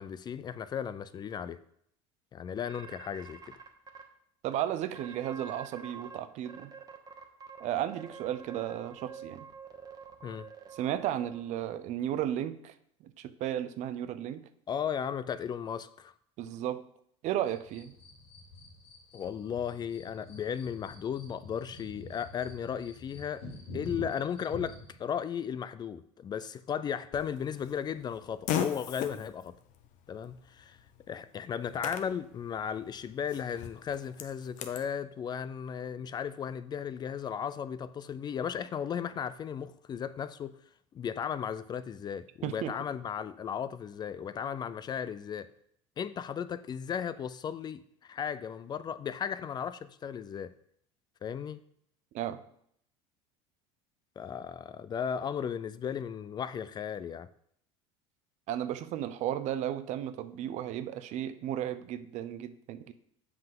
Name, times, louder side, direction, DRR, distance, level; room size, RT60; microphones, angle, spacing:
voice 1, 0.0-1.6 2.3-3.4 10.2-10.5 14.7-16.1 19.1-23.4 23.7-29.5 30.1-30.8 31.1-40.6 40.9-45.5 46.0-50.5 51.2-51.6 54.2-57.3, left 8 dB, 30° left, 0.4 m, -35 dB
sound 1, 2.7-4.0 4.5-4.6 4.9-6.2 6.5-11.7, right 6 dB, 25° right, 1.2 m, -47 dB
voice 2, 4.4-6.7 7.6-9.5 10.7-12.7 13.2-14.4 16.4-16.8 17.2-17.9 42.4-42.7 52.1-52.4 58.5-62.9, right 11 dB, 55° right, 0.6 m, -34 dB
sound 2, 17.4-24.9, left 2 dB, 90° left, 2.5 m, -47 dB
Fart, 27.1-34.9, left 9 dB, 60° left, 0.9 m, -40 dB
7.7 x 5.7 x 3.7 m
supercardioid pair, 100°, 14 cm